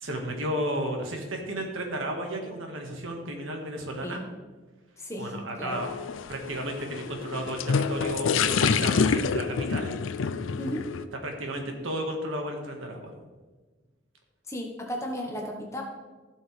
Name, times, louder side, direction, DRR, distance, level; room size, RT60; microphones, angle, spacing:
voice 1, 0.0-4.2 5.2-5.9 6.3-9.9 11.2-13.1, right 1 dB, 85° right, 2 dB, 1.7 m, -33 dB
voice 2, 5.0-5.8 10.6-10.8 14.5-15.8, equal, 15° left, 0 dB, 1.2 m, -35 dB
sound 1, 5.7-11.1, left 5 dB, 80° left, 0.5 m, -27 dB
15.5 x 6.4 x 3.4 m, 1.3 s
head